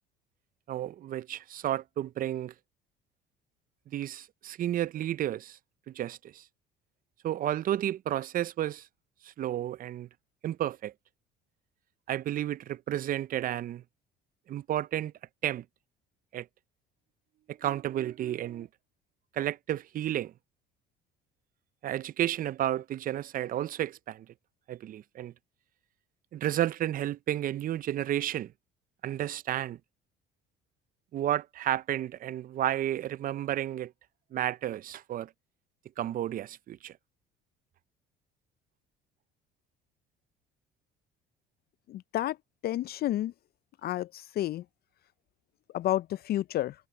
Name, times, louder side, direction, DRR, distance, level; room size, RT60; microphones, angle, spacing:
voice 1, 0.7-2.5 3.9-5.6 5.9-6.5 7.2-8.9 9.2-10.1 10.4-10.9 12.1-13.8 14.5-15.1 15.4-15.6 16.3-16.5 17.5-18.7 19.3-20.3 21.8-24.3 24.7-25.3 26.3-28.5 29.0-29.8 31.1-33.9 34.3-35.3 36.0-37.0, right 12 dB, 45° right, 0.5 m, -32 dB
voice 2, 41.9-42.4 42.6-43.3 43.8-44.6 45.7-46.7, left 14 dB, 50° left, 0.4 m, -30 dB
supercardioid pair, 85°, 21 cm